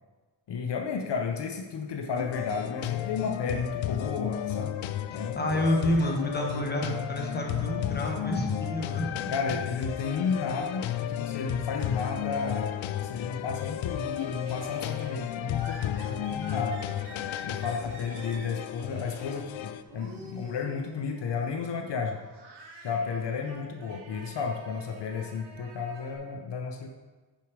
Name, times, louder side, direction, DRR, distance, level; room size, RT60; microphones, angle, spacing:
voice 1, 0.5-4.7 5.1-5.5 9.3-16.8 17.4-22.2 22.8-26.9, left 5 dB, 65° left, 3 dB, 0.9 m, -32 dB
sound 1, 2.2-19.8, left 11 dB, 85° left, 0.6 m, -33 dB
voice 2, 5.1-9.1, left 1 dB, 20° left, 1 dB, 1.3 m, -29 dB
Laughter, 10.9-12.9 13.2-26.1, right 2 dB, 60° right, 2.4 m, -50 dB
9.9 x 6.9 x 4.7 m, 1.3 s
wide cardioid pair, 170°, 46 cm